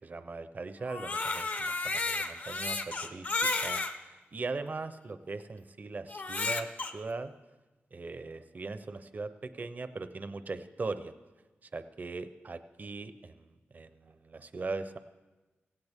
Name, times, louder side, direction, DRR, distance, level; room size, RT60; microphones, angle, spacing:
voice 1, 0.0-7.3 7.9-11.1 11.6-15.0, right 3 dB, 40° right, 11 dB, 0.7 m, -40 dB
Crying sobbing, 0.8-3.9 4.7-4.8 6.1-6.9, left 3 dB, 40° left, 0.8 m, -32 dB
17.0 x 16.0 x 3.6 m, 1.2 s
wide cardioid pair, 130°, 4 cm